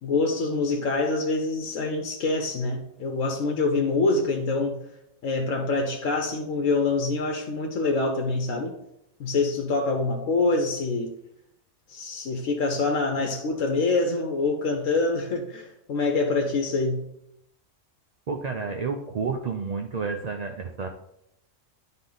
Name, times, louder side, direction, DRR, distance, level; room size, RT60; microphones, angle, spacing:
voice 1, 0.0-4.8 5.2-8.7 9.2-11.1 11.9-17.1, left 3 dB, 85° left, 2 dB, 1.1 m, -25 dB
voice 2, 18.3-20.9, right 5 dB, 50° right, 4 dB, 0.5 m, -30 dB
10.0 x 3.7 x 3.9 m, 0.79 s
omnidirectional pair, 1.3 m